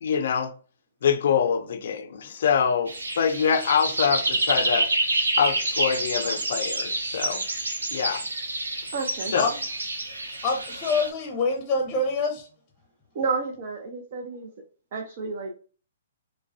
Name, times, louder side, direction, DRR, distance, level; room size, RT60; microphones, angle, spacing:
voice 1, 0.0-0.5 1.0-4.9 5.4-7.4 7.9-8.2 9.3-9.5, left 7 dB, 60° left, 0.5 m, -25 dB
sound 1, 2.9-11.1, right 2 dB, 75° right, 0.9 m, -28 dB
voice 2, 8.9-9.3 13.1-14.5 14.9-15.5, right 4 dB, 45° right, 0.6 m, -30 dB
voice 3, 10.4-12.5, left 3 dB, 25° left, 0.7 m, -26 dB
4.7 x 2.2 x 2.5 m
figure-of-eight pair, 120°, 0 cm